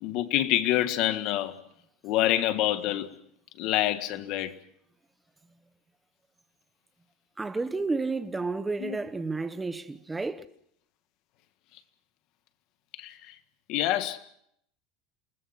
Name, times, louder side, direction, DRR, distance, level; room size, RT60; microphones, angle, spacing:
voice 1, 0.0-1.6 2.0-3.1 3.6-4.5 8.8-9.0 12.9-13.3 13.7-14.2, left 13 dB, 45° left, 1.7 m, -27 dB
voice 2, 7.4-10.5, right 3 dB, 10° right, 1.0 m, -31 dB
28.5 x 20.0 x 5.9 m
supercardioid pair, 170°, 0 cm